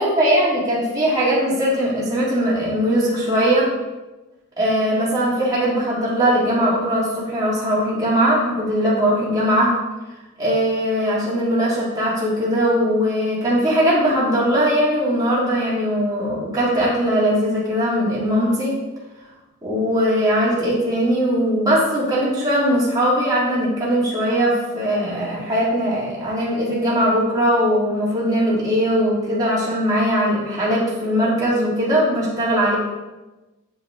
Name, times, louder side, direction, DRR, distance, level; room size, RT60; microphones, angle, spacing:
voice 1, 0.0-3.7 4.6-9.7 10.4-18.7 19.6-32.8, equal, 15° right, -8 dB, 1.9 m, -20 dB
8.5 x 4.9 x 3.6 m, 1.1 s
head